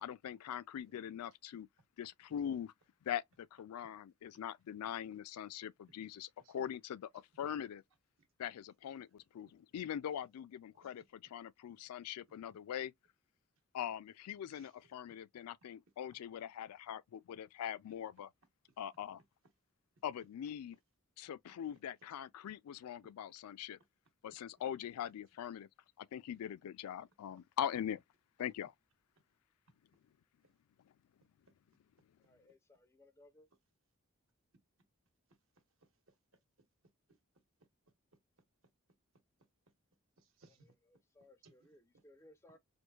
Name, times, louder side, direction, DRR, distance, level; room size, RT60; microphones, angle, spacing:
voice 1, 0.0-1.7 2.0-2.7 3.0-7.1 7.4-7.8 8.4-12.9 13.7-18.3 18.8-19.2 20.0-20.8 21.2-23.8 24.2-25.7 26.0-28.0 28.4-28.7, left 9 dB, 90° left, 0.3 m, -42 dB
voice 2, 14.5-14.8 18.7-18.8 30.4-30.5 35.3-36.2 40.2-40.7 41.4-41.7 42.5-42.6, right 3 dB, 65° right, 1.1 m, -67 dB
voice 3, 32.2-33.5 40.6-42.6, left 1 dB, 10° left, 0.3 m, -64 dB
4.5 x 2.4 x 2.3 m
head